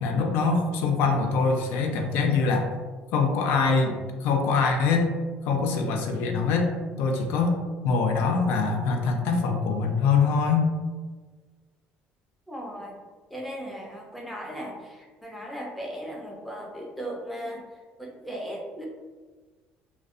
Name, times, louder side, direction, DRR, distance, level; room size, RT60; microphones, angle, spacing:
voice 1, 0.0-2.7 3.1-5.1 5.5-6.7 7.0-7.6 7.8-10.7, left 4 dB, 75° left, 4 dB, 0.4 m, -23 dB
voice 2, 12.5-12.9 13.3-15.0 15.2-17.6 18.0-18.9, equal, ahead, -2 dB, 0.5 m, -37 dB
2.5 x 2.1 x 2.3 m, 1.4 s
cardioid pair, 120°, 4 cm